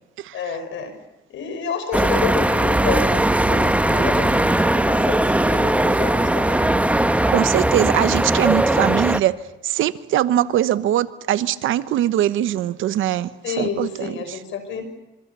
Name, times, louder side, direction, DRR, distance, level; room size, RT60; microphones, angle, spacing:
voice 1, 0.3-0.9 1.3-6.9 13.4-15.0, left 6 dB, 75° left, 8 dB, 5.7 m, -30 dB
sound 1, 1.9-9.2, right 1 dB, 5° right, 1.3 m, -19 dB
voice 2, 7.3-9.3 9.6-13.3 13.6-14.4, right 12 dB, 80° right, 14 dB, 1.2 m, -21 dB
26.0 x 24.0 x 6.9 m, 1.0 s
cardioid pair, 90°, 20 cm